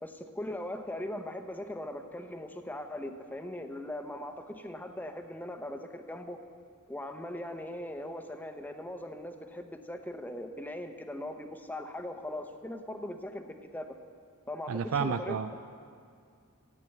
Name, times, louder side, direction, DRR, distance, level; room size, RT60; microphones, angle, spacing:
voice 1, 0.0-6.4 6.9-14.0 14.5-15.4, left 1 dB, 10° left, 6 dB, 0.8 m, -40 dB
voice 2, 14.7-15.6, right 6 dB, 65° right, 9 dB, 0.4 m, -31 dB
15.0 x 9.3 x 7.7 m, 2.3 s
head